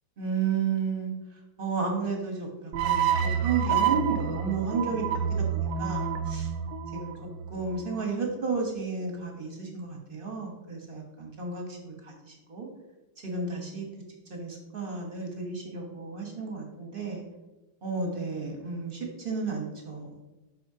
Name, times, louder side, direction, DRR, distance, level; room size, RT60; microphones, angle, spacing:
voice 1, 0.2-1.1 1.6-5.0 5.4-6.5 6.9-7.1 7.5-12.7 13.2-13.8 14.3-17.2 17.8-20.1, right 4 dB, 35° right, 0 dB, 1.1 m, -32 dB
sound 1, 2.7-7.9, right 8 dB, 75° right, 1.2 m, -28 dB
11.5 x 4.3 x 2.8 m, 1.0 s
omnidirectional pair, 2.2 m